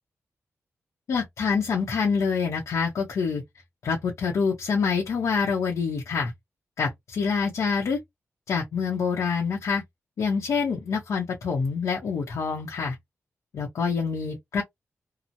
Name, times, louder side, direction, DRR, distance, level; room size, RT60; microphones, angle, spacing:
voice 1, 1.1-3.4 3.8-6.3 6.8-8.0 8.5-9.8 10.2-13.0 13.5-14.6, left 5 dB, 85° left, 0.8 m, -26 dB
2.9 x 2.1 x 2.6 m
wide cardioid pair, 155°, 5 cm